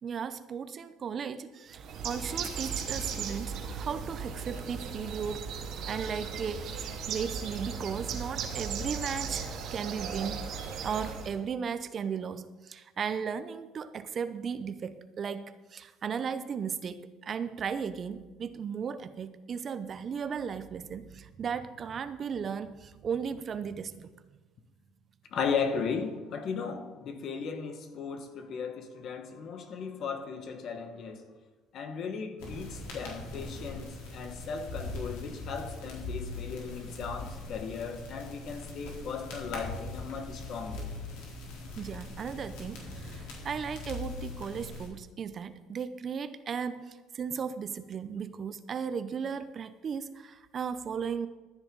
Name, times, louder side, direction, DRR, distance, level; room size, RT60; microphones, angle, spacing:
voice 1, 0.0-5.5 5.9-10.5 10.8-24.1 41.8-51.3, right 6 dB, 40° right, 0.7 m, -36 dB
Bird, 1.7-11.4, right 6 dB, 60° right, 1.9 m, -37 dB
voice 2, 25.3-31.3 31.7-40.9, left 5 dB, 50° left, 1.6 m, -36 dB
sound 1, 32.4-44.9, left 2 dB, 80° left, 3.8 m, -41 dB
14.5 x 9.7 x 4.0 m
cardioid pair, 110°, 0 cm